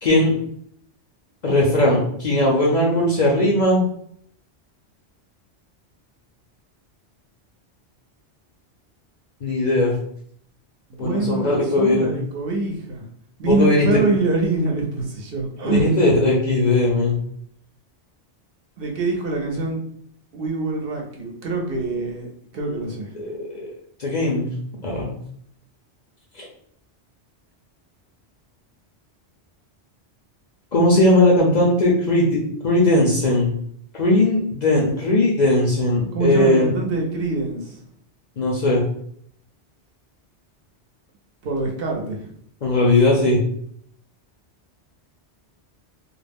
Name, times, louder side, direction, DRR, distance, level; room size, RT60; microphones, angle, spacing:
voice 1, 0.0-0.3 1.4-3.8 9.4-10.0 11.0-12.1 13.4-14.0 15.6-17.2 23.2-23.7 24.0-24.5 24.8-25.1 26.3-26.5 30.7-33.5 33.9-36.7 38.4-38.9 42.6-43.4, left 1 dB, 50° left, -3 dB, 0.6 m, -18 dB
voice 2, 10.9-13.0 13.4-15.9 18.8-19.8 20.3-22.3 22.5-23.2 36.1-37.8 41.4-42.3, right 3 dB, 60° right, 0 dB, 0.7 m, -24 dB
2.4 x 2.0 x 3.3 m, 0.66 s
omnidirectional pair, 1.2 m